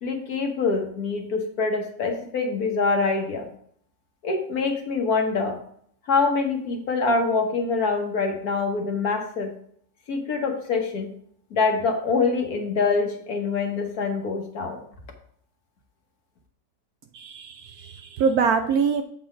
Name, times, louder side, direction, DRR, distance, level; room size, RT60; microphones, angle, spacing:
voice 1, 0.0-3.5 4.2-5.6 6.1-9.5 10.1-11.1 11.5-14.9, left 4 dB, 60° left, 3 dB, 1.5 m, -25 dB
voice 2, 17.1-19.0, right 6 dB, 70° right, 7 dB, 0.9 m, -24 dB
7.7 x 3.8 x 5.0 m, 0.64 s
omnidirectional pair, 1.9 m